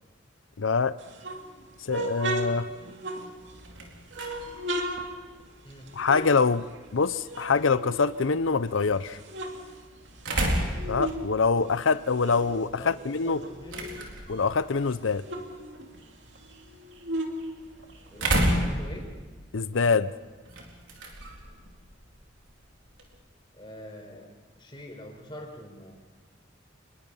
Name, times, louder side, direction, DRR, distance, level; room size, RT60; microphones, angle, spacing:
voice 1, 0.6-0.9 1.9-2.7 6.0-6.7 6.9-9.2 10.9-13.4 14.3-15.2 19.5-20.1, left 4 dB, 90° left, 15 dB, 0.7 m, -24 dB
sound 1, 1.0-3.7 4.1-7.0 7.3-8.6 9.0-11.3 11.6-14.1 14.5-14.6 14.8-18.3, right 1 dB, 65° right, 2.7 m, -36 dB
sound 2, 3.4-23.2, right 1 dB, 85° right, 4.3 m, -35 dB
voice 2, 12.7-14.0 18.1-19.1 23.5-24.3 24.6-25.9, equal, 25° left, 2 dB, 4.4 m, -44 dB
27.0 x 21.5 x 5.6 m, 1.4 s
head